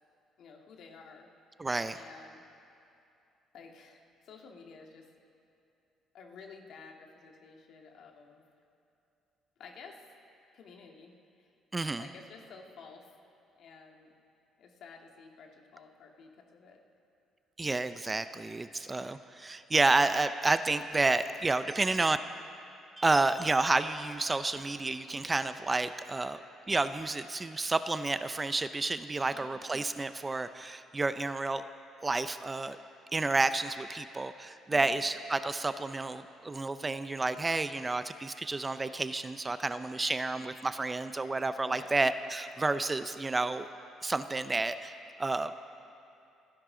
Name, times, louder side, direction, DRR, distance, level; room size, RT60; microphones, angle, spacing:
voice 1, 0.4-1.3 1.9-2.4 3.5-5.1 6.1-8.4 9.6-10.0 10.5-11.1 11.4-11.5 12.0-13.1 13.6-14.1 14.6-16.8 29.3-29.7 34.7-35.0 41.7-42.0, left 5 dB, 65° left, 2 dB, 1.8 m, -52 dB
voice 2, 1.6-2.0 11.7-12.1 17.6-22.2 23.0-26.4 26.7-31.6 32.0-32.8 33.1-43.7 44.0-44.9 45.2-45.5, right 3 dB, 20° right, 11 dB, 0.5 m, -30 dB
30.0 x 10.5 x 3.8 m, 2.7 s
cardioid pair, 105°, 0 cm